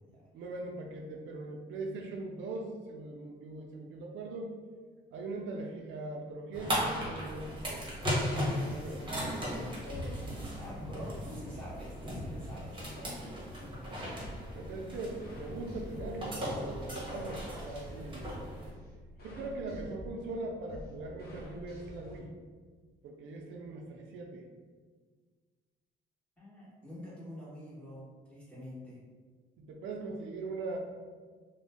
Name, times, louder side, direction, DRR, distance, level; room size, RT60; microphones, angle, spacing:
voice 1, 0.3-4.6 5.1-7.9 8.8-9.0 14.5-18.3 19.2-22.3 23.0-24.4 29.6-30.8, right 2 dB, 80° right, 1 dB, 0.4 m, -40 dB
sound 1, 6.5-18.7, equal, 25° right, 1.1 m, -37 dB
voice 2, 8.5-13.5 13.9-14.3 26.4-29.0, equal, 5° left, -9 dB, 1.3 m, -47 dB
sound 2, 14.2-22.2, left 1 dB, 50° left, 0.8 m, -48 dB
2.5 x 2.1 x 3.4 m, 1.5 s
cardioid pair, 90°, 20 cm